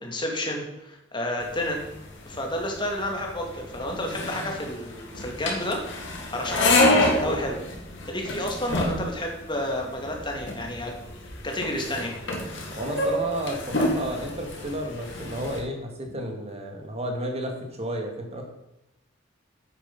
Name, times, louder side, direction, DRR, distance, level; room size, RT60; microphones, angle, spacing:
voice 1, 0.0-1.8 2.2-5.8 6.1-7.6 8.1-11.0 11.4-12.1, left 1 dB, 25° left, 1 dB, 2.4 m, -30 dB
sound 1, 1.4-15.6, left 2 dB, 65° left, 2.4 m, -28 dB
voice 2, 12.8-18.4, right 1 dB, 35° right, 2 dB, 2.3 m, -32 dB
9.5 x 8.8 x 5.5 m, 0.90 s
head